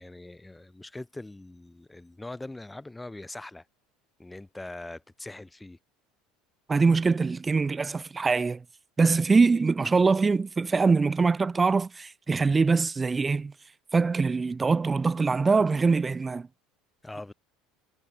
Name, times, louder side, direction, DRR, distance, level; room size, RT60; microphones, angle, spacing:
voice 1, 0.0-3.6 4.2-5.8 17.0-17.3, left 2 dB, 10° left, 0.7 m, -42 dB
voice 2, 6.7-8.6 9.0-13.5 13.9-16.5, right 4 dB, 20° right, 0.4 m, -23 dB
hypercardioid pair, 85°, 0 cm